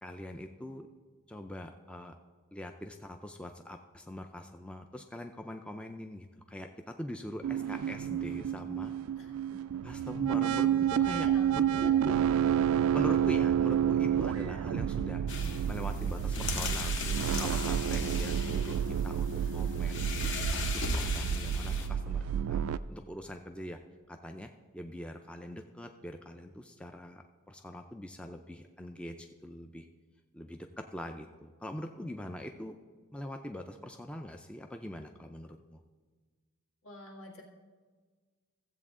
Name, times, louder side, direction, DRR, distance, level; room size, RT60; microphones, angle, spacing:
voice 1, 0.0-0.9 1.3-2.1 2.5-8.9 9.8-12.2 12.9-15.2 15.7-18.8 19.0-20.2 20.5-22.6 22.9-23.8 24.1-29.9 30.3-32.8 33.1-35.8, left 1 dB, 5° left, 5 dB, 0.3 m, -43 dB
sound 1, 7.4-22.8, right 9 dB, 80° right, 0.3 m, -30 dB
voice 2, 9.2-9.6 10.9-12.0 36.8-37.4, left 1 dB, 75° left, -1 dB, 1.8 m, -47 dB
sound 2, 15.3-21.9, left 3 dB, 55° left, 1.0 m, -37 dB
15.0 x 7.7 x 3.7 m, 1.5 s
head